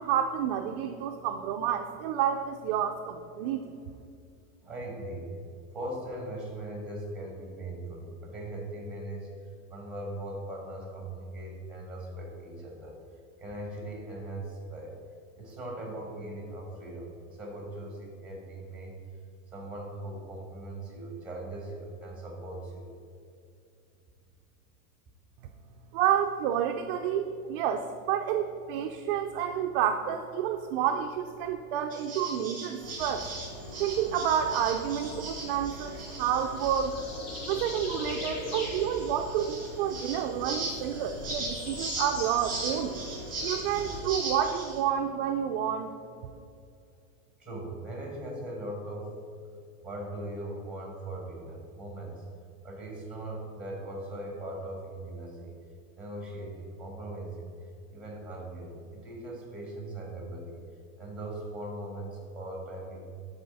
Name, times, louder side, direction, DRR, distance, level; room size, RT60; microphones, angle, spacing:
voice 1, 0.0-3.8 25.9-33.3 33.8-37.0 37.5-42.9 43.4-45.9 46.2-46.3, right 9 dB, 40° right, 5 dB, 0.4 m, -29 dB
voice 2, 4.6-5.3 5.7-9.3 9.7-13.0 13.4-14.9 15.4-18.9 19.5-22.9 47.4-49.1 49.8-52.2 52.6-55.5 56.0-57.5 57.9-60.6 61.0-63.0, right 1 dB, ahead, 0 dB, 1.8 m, -39 dB
sound 1, 31.9-44.8, right 3 dB, 20° right, 1.9 m, -40 dB
sound 2, 32.8-44.0, left 1 dB, 60° left, 2.2 m, -40 dB
11.5 x 4.3 x 5.3 m, 2.5 s
supercardioid pair, 160°, 42 cm